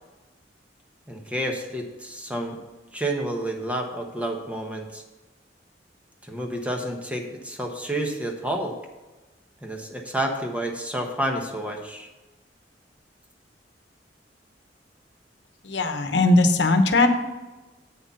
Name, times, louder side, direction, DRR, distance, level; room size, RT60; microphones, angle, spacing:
voice 1, 1.1-2.6 2.9-5.0 6.2-8.7 9.6-12.1, right 1 dB, 10° right, 2 dB, 1.1 m, -30 dB
voice 2, 15.6-17.1, left 2 dB, 80° left, 7 dB, 1.0 m, -19 dB
8.4 x 6.6 x 5.6 m, 1.1 s
head